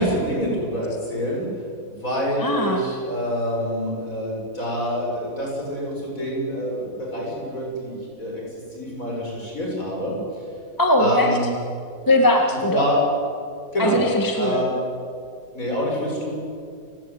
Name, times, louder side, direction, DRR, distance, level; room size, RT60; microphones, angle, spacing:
voice 1, 0.0-1.5 2.0-8.4 8.7-10.2 11.0-11.4 12.7-13.0 13.7-14.0 14.4-14.7 15.5-16.4, equal, 45° left, -2 dB, 7.9 m, -26 dB
voice 2, 2.4-2.8 10.8-11.4 12.1-12.9 13.8-14.7, left 1 dB, 10° left, 2 dB, 1.9 m, -20 dB
29.5 x 17.5 x 9.2 m, 2.3 s
omnidirectional pair, 2.0 m